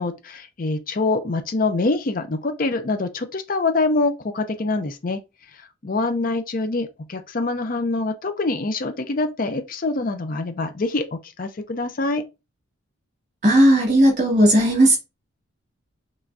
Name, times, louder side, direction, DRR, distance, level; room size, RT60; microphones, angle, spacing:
voice 1, 0.0-5.2 5.8-12.2, left 3 dB, 45° left, 0.5 m, -25 dB
voice 2, 13.4-15.0, right 1 dB, 35° right, 2.1 m, -15 dB
5.8 x 3.1 x 2.6 m
head